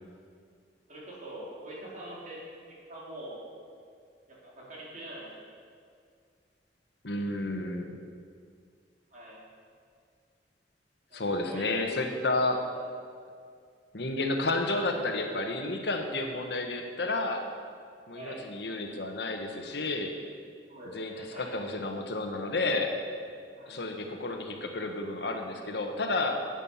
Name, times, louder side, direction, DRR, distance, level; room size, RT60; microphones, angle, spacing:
voice 1, 0.9-3.4 4.3-5.5 9.1-9.4 11.1-12.2 18.1-18.5 20.7-21.5 23.5-23.8, right 1 dB, 45° right, -6 dB, 4.0 m, -44 dB
voice 2, 7.0-8.0 11.1-12.6 13.9-17.5 18.1-20.2 20.9-22.9 23.7-26.4, left 2 dB, 70° left, 4 dB, 1.3 m, -31 dB
14.5 x 9.1 x 5.7 m, 2.2 s
head